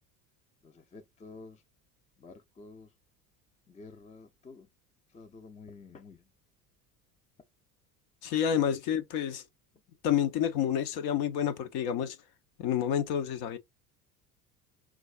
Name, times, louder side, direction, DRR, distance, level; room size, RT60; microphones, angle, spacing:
voice 1, 0.6-1.6 2.2-2.9 3.7-4.7 5.1-6.3, left 3 dB, 15° left, 0.6 m, -50 dB
voice 2, 8.2-9.4 10.0-12.2 12.6-13.6, left 9 dB, 55° left, 0.7 m, -29 dB
3.9 x 2.4 x 2.4 m
hypercardioid pair, 70°, 47 cm